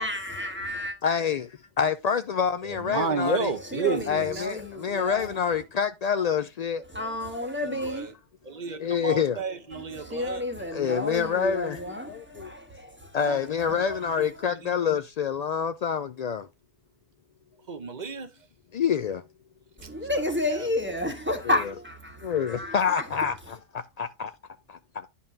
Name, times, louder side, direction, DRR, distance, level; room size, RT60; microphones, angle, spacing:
voice 1, 0.0-1.0 3.7-5.4 6.9-8.1 9.7-13.1 13.7-14.2 19.8-23.0, left 1 dB, 10° right, 1.3 m, -31 dB
voice 2, 1.0-3.5 4.1-6.8 8.8-9.4 10.7-12.5 13.1-16.5 18.7-19.2 22.2-24.3 24.7-25.1, left 7 dB, 70° left, 0.3 m, -27 dB
voice 3, 2.6-4.5 7.6-8.1 8.4-10.4 13.2-14.3 14.6-14.7 17.7-18.3 19.8-19.9 20.5-20.7, right 4 dB, 45° right, 0.9 m, -32 dB
10.5 x 5.5 x 2.7 m
omnidirectional pair, 1.2 m